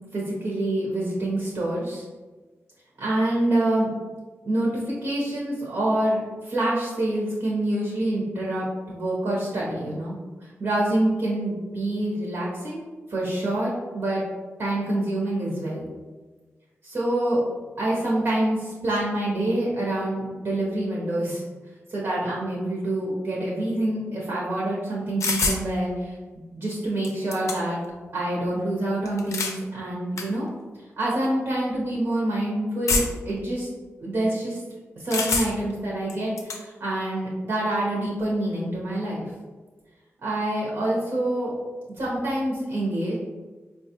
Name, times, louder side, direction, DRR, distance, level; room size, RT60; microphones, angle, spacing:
voice 1, 0.1-2.0 3.0-3.9 4.4-10.2 10.4-14.2 14.6-15.8 16.8-17.4 17.8-21.4 21.9-26.2 26.5-27.8 28.1-30.5 31.0-33.7 34.0-34.6 35.0-39.3 40.2-41.5 42.0-43.2, right 1 dB, 70° right, -5 dB, 0.9 m, -26 dB
sound 1, 25.2-25.6 26.7-26.8 27.0-27.9 29.1-29.6 30.2-30.3 31.1-31.3 32.9-33.3 35.1-35.7 36.1-36.6, left 3 dB, 90° left, 0.4 m, -26 dB
4.3 x 2.4 x 2.8 m, 1.3 s
cardioid pair, 65°, 5 cm